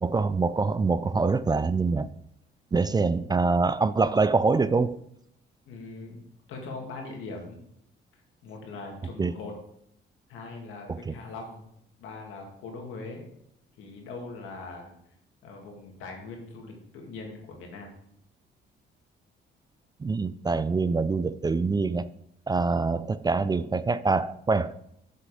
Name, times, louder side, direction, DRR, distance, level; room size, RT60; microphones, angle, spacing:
voice 1, 0.0-2.1 2.7-5.0 9.2-9.3 10.9-11.1 20.0-22.1 22.5-24.7, right 4 dB, 20° right, 0.4 m, -25 dB
voice 2, 5.7-6.2 6.5-7.6 8.4-9.5 10.3-11.7 12.0-13.3 13.8-14.9 15.4-17.9, left 3 dB, 90° left, 2.4 m, -41 dB
7.5 x 6.6 x 5.0 m
cardioid pair, 90°, 20 cm